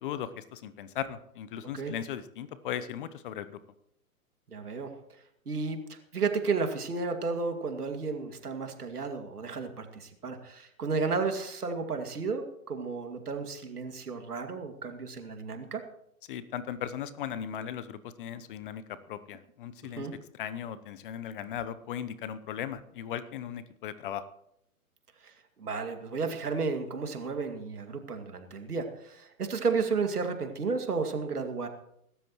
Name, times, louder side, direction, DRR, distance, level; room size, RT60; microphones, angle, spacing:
voice 1, 0.0-3.6 16.3-20.1 20.4-24.2, left 9 dB, 35° left, 14 dB, 0.8 m, -37 dB
voice 2, 4.5-4.9 5.5-15.8 20.0-20.1 25.2-25.3 25.6-31.7, right 4 dB, 80° right, 6 dB, 2.4 m, -33 dB
23.5 x 13.0 x 3.1 m, 0.76 s
figure-of-eight pair, 125°, 45 cm